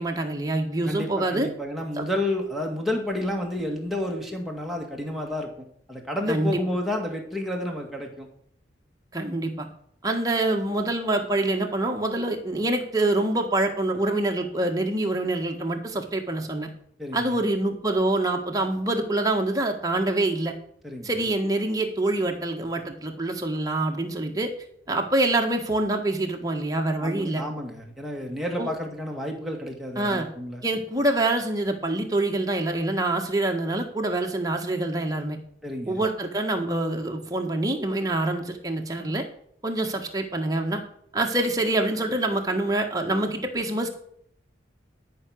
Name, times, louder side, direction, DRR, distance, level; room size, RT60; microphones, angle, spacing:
voice 1, 0.0-1.5 2.0-2.1 6.3-6.6 9.1-9.7 10.0-16.7 17.1-20.5 21.0-24.5 24.9-27.4 28.6-28.7 30.0-30.3 30.6-35.4 35.9-39.2 39.6-40.8 41.1-43.9, right 2 dB, 20° right, 2 dB, 1.6 m, -25 dB
voice 2, 0.9-5.5 5.9-8.3 17.0-17.4 20.8-21.1 27.0-30.6 35.6-36.0, left 1 dB, ahead, 0 dB, 2.0 m, -30 dB
13.0 x 5.9 x 6.5 m, 0.67 s
head